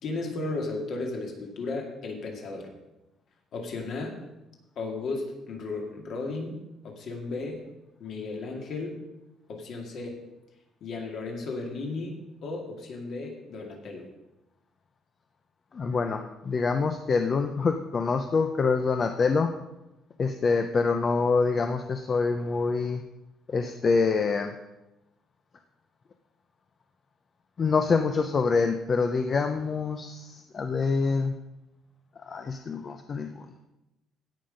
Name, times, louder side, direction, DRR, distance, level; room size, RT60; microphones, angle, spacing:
voice 1, 0.0-2.7 3.5-4.2 4.8-6.6 6.8-7.6 8.0-9.0 9.5-10.2 10.8-12.1 12.4-14.1, left 3 dB, 50° left, 2 dB, 2.2 m, -34 dB
voice 2, 15.7-19.5 20.2-23.0 23.5-24.5 27.6-31.3 32.3-33.5, left 4 dB, 30° left, 6 dB, 0.6 m, -26 dB
16.5 x 5.7 x 5.1 m, 0.95 s
cardioid pair, 165°, 0 cm